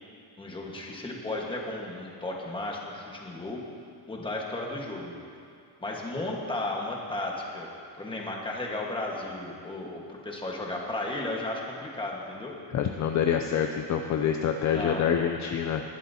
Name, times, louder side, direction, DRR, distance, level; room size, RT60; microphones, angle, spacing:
voice 1, 0.4-3.6 4.1-5.1 5.8-7.7 8.0-12.5 14.7-15.0, left 2 dB, 10° left, -1 dB, 1.4 m, -34 dB
voice 2, 12.7-15.8, left 8 dB, 45° left, 5 dB, 0.5 m, -26 dB
19.5 x 11.5 x 2.8 m, 2.4 s
cardioid pair, 160°, 41 cm